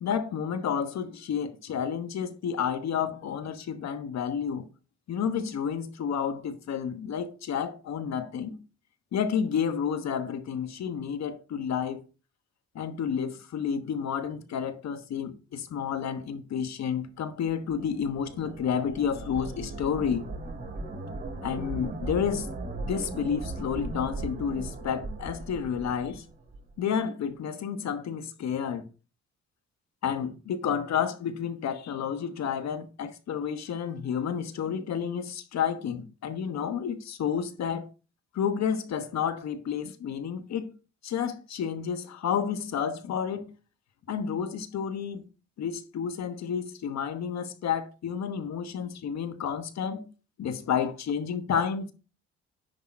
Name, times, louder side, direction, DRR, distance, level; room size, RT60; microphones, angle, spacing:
voice 1, 0.0-4.7 5.1-8.6 9.1-12.0 12.7-20.3 21.4-22.5 22.9-26.2 26.8-28.9 30.0-37.9 38.3-40.7 41.0-43.5 44.1-45.2 45.6-50.1 50.4-51.9, left 7 dB, 60° left, 1.1 m, -30 dB
sound 1, 17.5-26.7, right 2 dB, 35° right, 3.0 m, -38 dB
10.0 x 3.7 x 4.3 m
cardioid pair, 90°, 30 cm